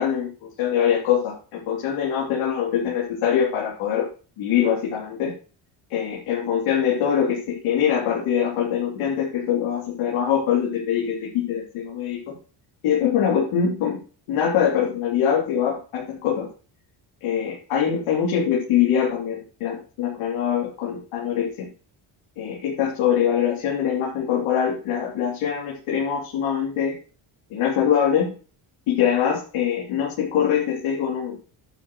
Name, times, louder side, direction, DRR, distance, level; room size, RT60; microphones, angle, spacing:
voice 1, 0.0-4.1 4.4-5.3 5.9-12.3 12.8-14.0 14.3-16.5 17.2-21.7 22.4-26.9 27.5-28.3 28.9-31.4, left 8 dB, 90° left, -4 dB, 3.3 m, -23 dB
11.5 x 8.4 x 3.2 m, 0.37 s
cardioid pair, 105°, 49 cm